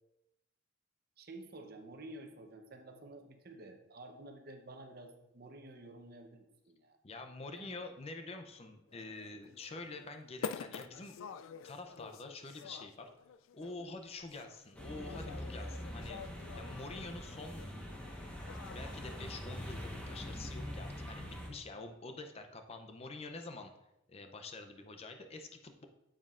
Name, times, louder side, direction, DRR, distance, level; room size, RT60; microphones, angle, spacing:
voice 1, 1.2-7.0 7.5-7.8, right 2 dB, 50° right, 5 dB, 0.8 m, -51 dB
voice 2, 7.0-11.2 11.6-13.1 13.5-16.2 16.6-17.7 18.7-23.7 24.1-25.9, left 3 dB, 30° left, 6 dB, 0.6 m, -47 dB
sound 1, 8.9-19.2, left 6 dB, 85° left, 0.3 m, -48 dB
sound 2, 14.7-21.5, left 1 dB, 5° left, 1.2 m, -44 dB
9.2 x 7.5 x 2.5 m, 0.90 s
head